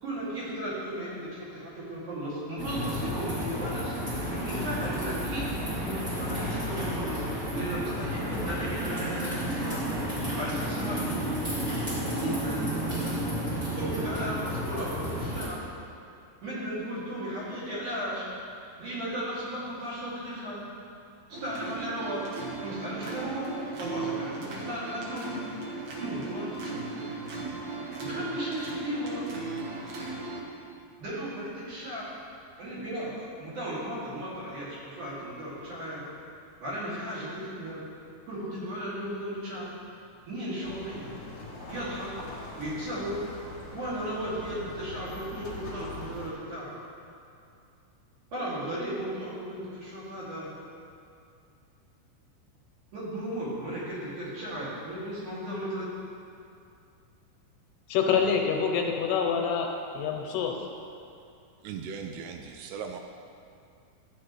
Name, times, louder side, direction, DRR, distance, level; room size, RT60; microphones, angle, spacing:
voice 1, 0.0-4.0 4.3-9.8 10.4-11.4 12.1-13.1 13.7-15.6 16.4-18.3 18.8-20.6 21.4-22.2 22.6-23.5 23.8-25.4 26.0-27.0 28.0-29.3 31.0-32.1 32.6-33.1 33.4-36.0 36.6-37.8 38.3-39.7 40.3-41.1 41.7-42.1 42.6-43.2 43.7-46.7 48.3-50.5 52.9-55.9, right 1 dB, 50° right, -9 dB, 3.5 m, -35 dB
sound 1, 2.6-15.5, equal, 25° right, 2.1 m, -32 dB
sound 2, 21.3-30.4, right 3 dB, 65° right, 1.8 m, -37 dB
sound 3, 40.6-46.3, left 2 dB, 50° left, 1.7 m, -42 dB
voice 2, 57.9-59.7 59.9-60.5, left 6 dB, 80° left, 2 dB, 2.7 m, -26 dB
voice 3, 61.6-63.0, right 6 dB, 85° right, 5 dB, 2.5 m, -38 dB
12.5 x 8.5 x 3.1 m, 2.5 s
omnidirectional pair, 4.8 m